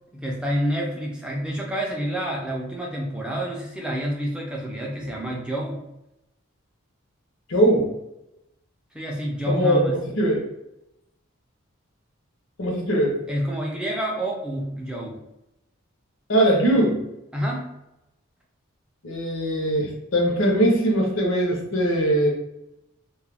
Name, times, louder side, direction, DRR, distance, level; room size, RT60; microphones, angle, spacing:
voice 1, 0.1-5.9 8.9-9.9 13.3-15.2 17.3-17.7, equal, 5° right, -2 dB, 0.4 m, -28 dB
voice 2, 7.5-7.9 9.5-10.4 12.6-13.2 16.3-17.0 19.0-22.3, right 1 dB, 65° left, 0 dB, 0.7 m, -21 dB
2.3 x 2.2 x 3.3 m, 0.86 s
head